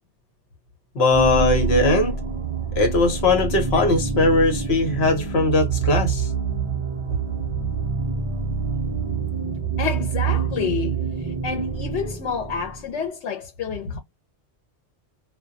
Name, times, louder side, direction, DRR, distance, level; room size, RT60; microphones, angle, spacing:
voice 1, 0.9-2.2 2.8-6.3, left 2 dB, 70° left, 1.1 m, -20 dB
sound 1, 1.1-13.0, right 5 dB, 45° right, 0.4 m, -26 dB
voice 2, 9.8-14.0, left 7 dB, 90° left, 1.0 m, -29 dB
2.2 x 2.2 x 2.5 m
omnidirectional pair, 1.1 m